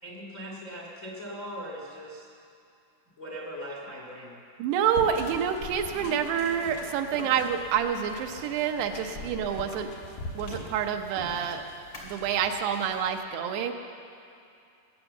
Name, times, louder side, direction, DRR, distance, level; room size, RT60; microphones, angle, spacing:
voice 1, 0.0-2.3 3.2-4.4, equal, 80° left, -2 dB, 0.7 m, -40 dB
voice 2, 4.6-9.9 10.4-11.6 12.0-13.7, right 8 dB, 85° right, 5 dB, 3.0 m, -28 dB
sound 1, 4.9-13.2, left 2 dB, 65° left, 2.7 m, -43 dB
sound 2, 5.6-13.0, left 2 dB, 30° left, 2.9 m, -48 dB
19.5 x 8.9 x 7.1 m, 2.6 s
omnidirectional pair, 4.7 m